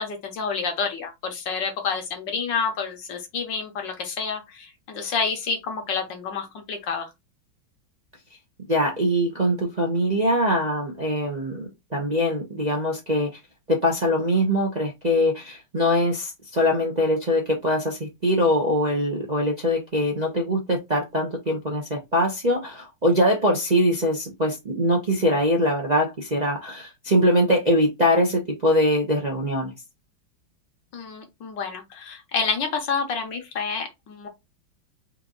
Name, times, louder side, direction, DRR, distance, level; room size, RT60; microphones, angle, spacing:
voice 1, 0.0-7.1 30.9-34.3, left 5 dB, 65° left, 1.6 m, -29 dB
voice 2, 8.7-13.3 13.7-29.7, equal, 30° right, 0.8 m, -22 dB
4.6 x 2.7 x 3.8 m
omnidirectional pair, 2.2 m